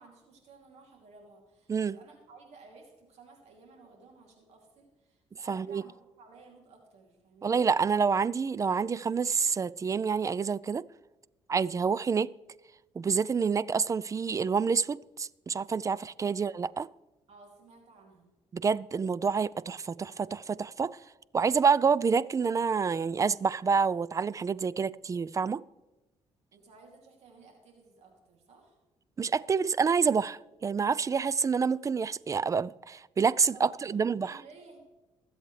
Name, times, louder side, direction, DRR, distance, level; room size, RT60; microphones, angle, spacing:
voice 1, 0.0-7.7 16.3-16.5 17.3-18.3 26.5-28.8 33.5-34.8, right 3 dB, 75° right, 2.7 m, -55 dB
voice 2, 5.5-5.8 7.4-10.8 11.5-12.3 13.0-16.9 18.5-21.0 21.3-25.6 29.2-34.4, right 5 dB, 30° right, 0.3 m, -28 dB
21.0 x 7.9 x 3.2 m
cardioid pair, 85°, 11 cm